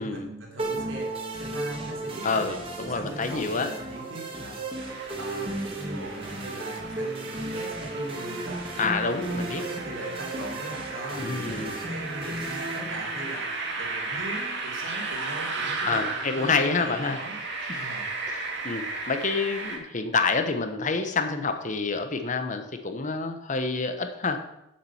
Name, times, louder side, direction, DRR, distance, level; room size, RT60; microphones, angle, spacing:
voice 1, 0.0-2.5 2.8-4.6 5.2-8.9 9.3-17.4 17.7-18.1, right 1 dB, 80° right, -2 dB, 3.5 m, -40 dB
sound 1, 0.6-13.6, right 2 dB, 30° right, 2.0 m, -35 dB
voice 2, 2.2-3.8 8.8-9.6 11.2-11.7 15.8-17.2 17.7-17.8 18.3-24.4, left 4 dB, 40° left, 7 dB, 1.0 m, -28 dB
sound 2, 4.8-19.8, right 3 dB, 60° right, 2.0 m, -35 dB
7.4 x 7.4 x 7.1 m, 0.85 s
head